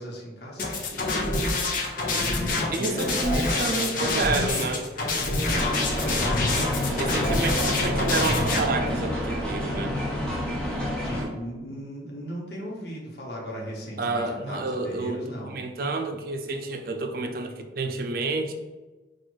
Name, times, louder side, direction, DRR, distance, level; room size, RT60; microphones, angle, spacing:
voice 1, 0.0-4.1 5.4-5.7 6.0-7.4 11.0-15.5, equal, 65° left, -3 dB, 1.1 m, -38 dB
sound 1, 0.6-8.6, left 2 dB, 50° left, 0.6 m, -27 dB
voice 2, 2.7-4.9 7.0-10.0 14.0-18.5, right 3 dB, 55° right, 5 dB, 0.4 m, -29 dB
sound 2, 5.5-11.2, left 1 dB, 5° left, 0.9 m, -28 dB
4.5 x 2.4 x 4.5 m, 1.2 s
head